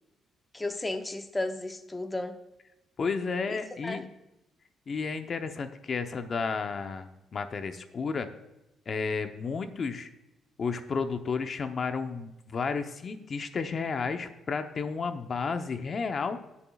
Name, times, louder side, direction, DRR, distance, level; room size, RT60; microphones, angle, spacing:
voice 1, 0.5-2.4 3.5-4.0, left 2 dB, 15° left, 7 dB, 0.8 m, -34 dB
voice 2, 3.0-4.1 4.9-8.3 8.9-10.1 10.6-16.4, left 5 dB, 45° left, 8 dB, 0.8 m, -32 dB
20.5 x 7.1 x 2.4 m, 0.95 s
cardioid pair, 90°, 0 cm